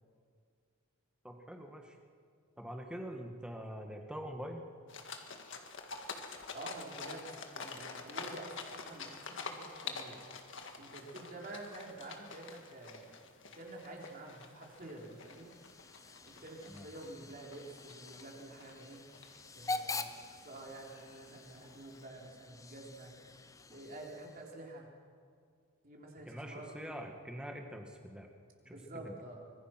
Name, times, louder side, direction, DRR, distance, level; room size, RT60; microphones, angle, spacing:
voice 1, 1.2-2.0 2.6-4.6 16.7-16.9 26.3-28.3 28.7-28.8 29.0-29.1, equal, 5° right, 2 dB, 1.9 m, -44 dB
sound 1, 4.9-22.0, left 4 dB, 60° left, 1.9 m, -48 dB
voice 2, 6.5-10.2 10.8-13.2 13.5-15.5 16.2-19.0 19.5-23.1 23.7-24.9 25.8-26.9 28.7-29.5, right 2 dB, 40° right, -1 dB, 3.7 m, -49 dB
Hiss / Train / Alarm, 15.0-24.6, left 3 dB, 15° left, 0.7 m, -46 dB
24.5 x 21.0 x 6.1 m, 2.1 s
head